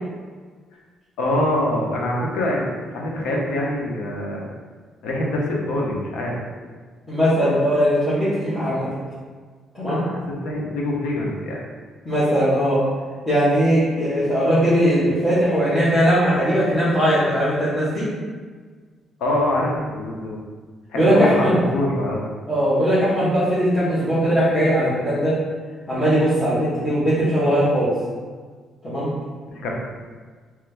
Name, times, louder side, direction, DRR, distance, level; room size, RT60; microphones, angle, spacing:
voice 1, 1.2-2.7 2.9-4.5 5.0-6.4 9.9-11.6 19.2-20.4 20.9-22.2 29.5-29.8, left 1 dB, 80° left, -2 dB, 0.8 m, -24 dB
voice 2, 7.1-8.9 9.8-10.0 12.0-12.8 13.3-18.0 20.9-21.6 22.5-25.3 25.9-27.9 28.8-29.1, equal, 20° left, -14 dB, 1.5 m, -19 dB
3.3 x 3.2 x 3.3 m, 1.5 s
cardioid pair, 110°, 0 cm